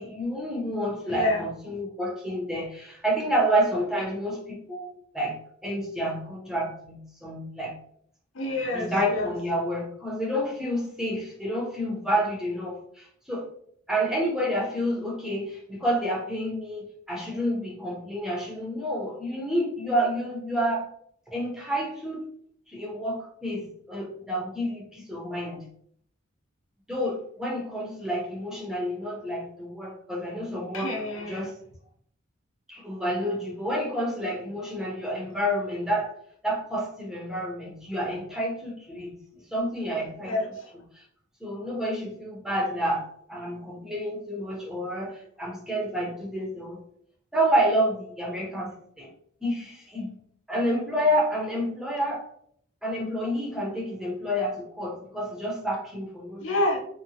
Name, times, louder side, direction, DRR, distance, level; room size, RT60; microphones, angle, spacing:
voice 1, 0.0-5.4 5.6-7.8 8.7-13.5 13.9-20.9 21.3-22.3 22.7-25.7 26.9-31.0 31.3-31.5 32.7-36.1 36.4-40.4 40.9-41.0 41.4-46.8 47.3-49.1 49.4-50.2 50.5-52.3 52.8-56.5, equal, 5° right, -3 dB, 0.6 m, -29 dB
voice 2, 1.1-1.4 8.3-9.3 9.6-9.7 30.7-31.5 40.2-40.7 56.4-56.8, left 1 dB, 70° left, 0 dB, 0.6 m, -28 dB
2.8 x 2.1 x 2.7 m, 0.65 s
head